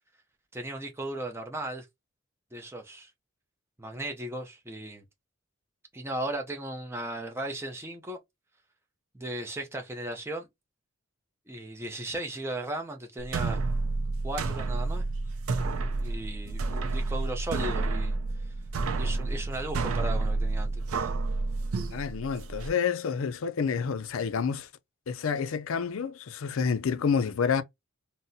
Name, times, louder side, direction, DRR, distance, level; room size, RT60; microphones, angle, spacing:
voice 1, 0.5-1.9 2.5-3.1 3.8-5.0 5.9-8.2 9.1-10.5 11.5-13.6 14.2-15.1 16.0-18.5 19.0-21.1, right 1 dB, 10° right, 0.5 m, -36 dB
sound 1, 13.2-22.7, right 3 dB, 80° right, 0.5 m, -30 dB
voice 2, 21.9-24.7 25.1-27.6, left 6 dB, 70° left, 0.4 m, -29 dB
3.9 x 2.0 x 2.6 m
head